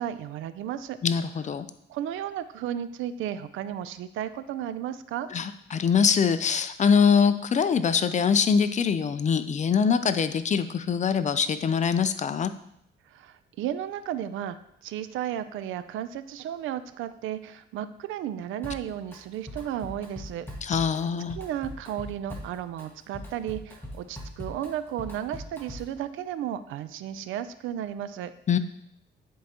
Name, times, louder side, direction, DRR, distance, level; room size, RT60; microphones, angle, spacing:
voice 1, 0.0-1.0 1.9-5.3 13.1-14.6 14.8-20.5 21.4-28.3, right 10 dB, 85° right, 13 dB, 0.5 m, -34 dB
voice 2, 1.0-1.7 5.3-12.5 20.6-21.4 28.5-28.6, left 6 dB, 35° left, 12 dB, 0.5 m, -23 dB
Drum kit, 18.6-19.2 19.5-26.0, equal, 10° left, 1.7 m, -41 dB
10.0 x 4.6 x 2.9 m, 0.75 s
cardioid pair, 90°, 20 cm